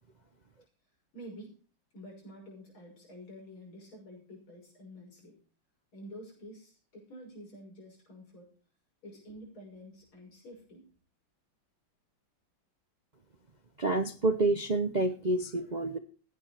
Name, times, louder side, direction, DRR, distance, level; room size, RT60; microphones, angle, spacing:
voice 1, 1.1-1.6 1.9-5.4 5.9-8.5 9.0-10.9, equal, 85° left, 0 dB, 7.1 m, -49 dB
voice 2, 13.8-16.0, right 2 dB, 60° right, 9 dB, 0.4 m, -28 dB
16.0 x 9.9 x 4.3 m, 0.37 s
omnidirectional pair, 2.2 m